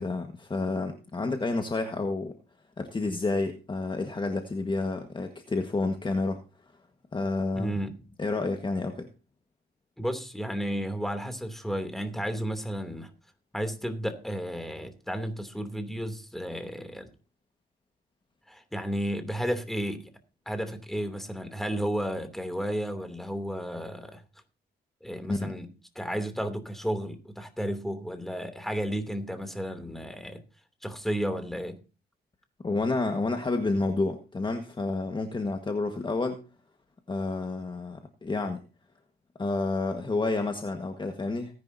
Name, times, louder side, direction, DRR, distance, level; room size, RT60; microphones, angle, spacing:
voice 1, 0.0-2.4 2.8-6.4 7.1-7.8 8.2-9.1 25.3-25.5 32.6-36.4 37.1-38.6 39.4-41.5, left 3 dB, 25° left, 5 dB, 1.6 m, -29 dB
voice 2, 7.5-8.0 10.0-13.1 13.5-17.1 18.5-20.1 20.5-24.2 25.0-25.7 25.9-30.4 30.8-31.8, equal, ahead, 8 dB, 2.8 m, -33 dB
18.0 x 10.5 x 2.8 m, 0.32 s
cardioid pair, 90°, 20 cm